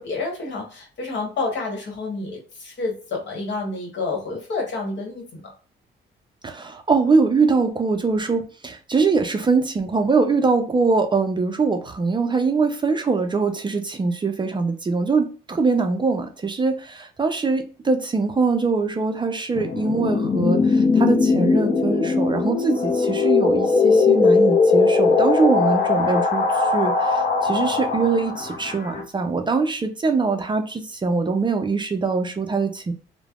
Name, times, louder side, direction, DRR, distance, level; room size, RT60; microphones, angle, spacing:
voice 1, 0.0-5.4, left 3 dB, 65° left, 1 dB, 1.2 m, -29 dB
voice 2, 6.4-32.9, right 4 dB, 25° right, 6 dB, 0.4 m, -22 dB
sound 1, 19.5-29.0, left 4 dB, 40° left, 0.6 m, -20 dB
3.2 x 2.0 x 2.3 m, 0.38 s
cardioid pair, 90°, 20 cm